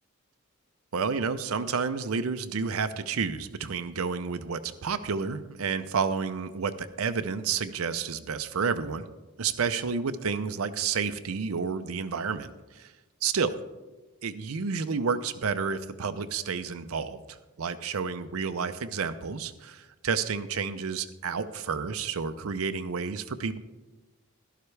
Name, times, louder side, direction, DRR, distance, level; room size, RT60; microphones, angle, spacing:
voice 1, 0.9-9.1 9.4-12.9 13.2-13.6 14.2-23.6, right 5 dB, 80° right, 10 dB, 0.6 m, -30 dB
12.0 x 11.5 x 3.3 m, 1.1 s
head